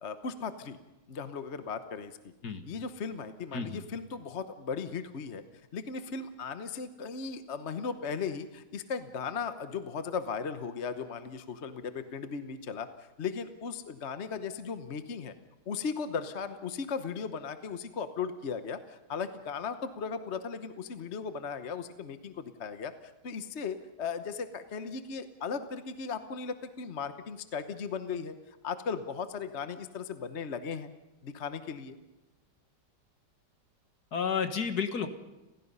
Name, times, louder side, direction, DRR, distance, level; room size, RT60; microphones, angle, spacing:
voice 1, 0.0-0.8 1.1-2.3 2.7-5.4 5.7-15.3 15.7-22.9 23.2-28.3 28.6-30.9 31.2-32.0, left 5 dB, 45° left, 9 dB, 1.2 m, -37 dB
voice 2, 3.5-3.8 34.1-35.1, left 6 dB, 60° left, 8 dB, 2.0 m, -31 dB
30.0 x 16.5 x 5.5 m, 1.1 s
omnidirectional pair, 1.9 m